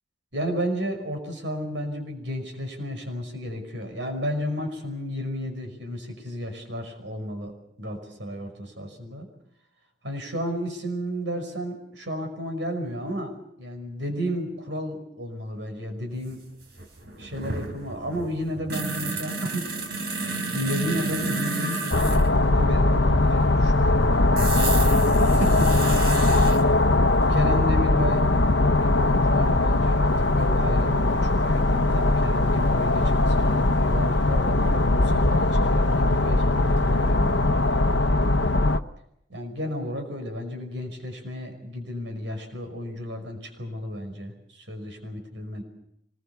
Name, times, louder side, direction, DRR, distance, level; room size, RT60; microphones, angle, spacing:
voice 1, 0.3-7.5 7.8-9.3 10.0-13.3 13.6-16.4 17.2-19.7 20.5-24.2 24.6-25.7 27.3-28.3 28.7-37.8 39.3-45.6, equal, 75° right, 5 dB, 5.6 m, -32 dB
sound 1, 16.3-16.4 16.6-22.3 24.4-26.6 28.8-28.9 30.4-31.1 31.4-31.5, right 3 dB, 60° right, 4.1 m, -31 dB
sound 2, 21.9-38.8, left 2 dB, 70° left, 1.0 m, -20 dB
25.5 x 21.5 x 7.0 m, 0.77 s
head